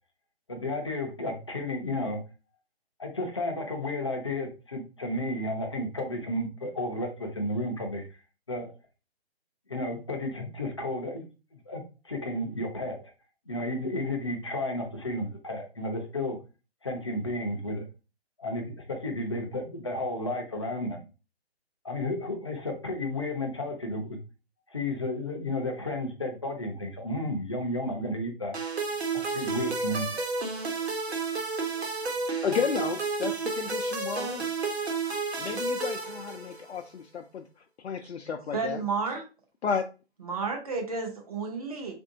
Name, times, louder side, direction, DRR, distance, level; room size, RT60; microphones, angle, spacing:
voice 1, 0.5-2.2 3.0-8.1 8.5-8.7 9.7-11.3 11.7-13.1 13.5-16.4 16.8-17.8 18.4-21.1 21.8-24.2 24.7-28.6 29.3-30.1, left 1 dB, 30° left, 1 dB, 0.5 m, -32 dB
sound 1, 28.5-36.8, right 4 dB, 75° right, 1.1 m, -31 dB
voice 2, 32.4-34.5 35.4-37.4 37.8-38.8 39.6-39.9, left 6 dB, 90° left, 4 dB, 0.5 m, -32 dB
voice 3, 38.5-39.3 40.2-41.9, right 4 dB, 35° right, 2 dB, 0.7 m, -31 dB
3.6 x 2.6 x 2.6 m, 0.31 s
hypercardioid pair, 170°, 32 cm